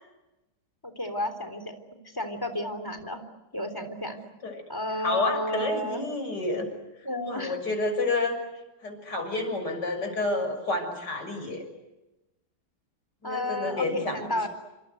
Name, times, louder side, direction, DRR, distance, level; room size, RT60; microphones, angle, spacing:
voice 1, 0.8-3.2 3.5-4.2 4.7-6.1 7.0-7.6 13.2-14.5, left 1 dB, 10° left, 8 dB, 3.5 m, -32 dB
voice 2, 5.0-6.7 7.2-8.4 8.8-11.6 13.2-14.2, left 2 dB, 55° left, 5 dB, 6.9 m, -29 dB
28.5 x 26.0 x 8.0 m, 0.98 s
omnidirectional pair, 2.2 m